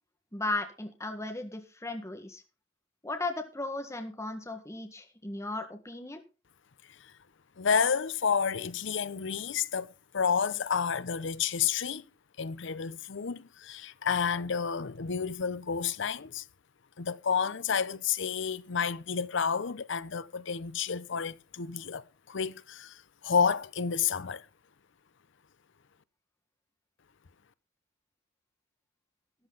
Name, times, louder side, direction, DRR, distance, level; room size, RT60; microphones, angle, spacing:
voice 1, 0.3-2.4 3.0-6.2, left 2 dB, 15° left, 1.7 m, -36 dB
voice 2, 7.6-12.0 12.4-16.4 17.0-24.5, left 6 dB, 65° left, 0.7 m, -30 dB
13.5 x 10.5 x 4.0 m
head